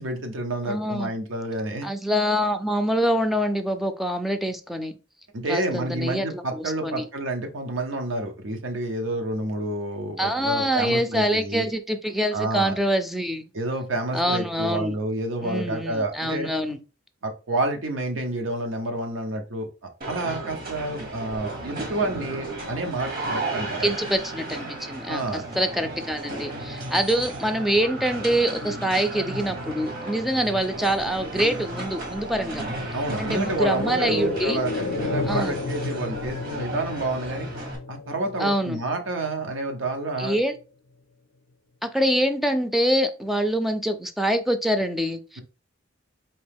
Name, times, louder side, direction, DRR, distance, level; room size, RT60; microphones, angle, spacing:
voice 1, 0.0-1.9 5.3-11.7 12.3-12.7 13.5-16.5 17.2-19.7 20.1-24.0 25.1-25.4 32.9-34.7 35.0-37.5 37.9-40.4, right 2 dB, 85° right, 5 dB, 0.9 m, -29 dB
voice 2, 0.7-1.1 1.8-5.0 5.5-7.1 10.2-13.5 14.1-14.9 15.4-16.8 23.8-32.6 33.2-34.6 35.3-35.6 38.4-38.8 40.2-40.5 41.8-45.4, equal, ahead, 7 dB, 0.4 m, -25 dB
sound 1, 20.0-37.8, right 2 dB, 50° right, 1.2 m, -34 dB
sound 2, 30.4-40.0 40.4-40.5, left 3 dB, 65° left, 0.4 m, -33 dB
4.3 x 2.8 x 3.4 m, 0.33 s
head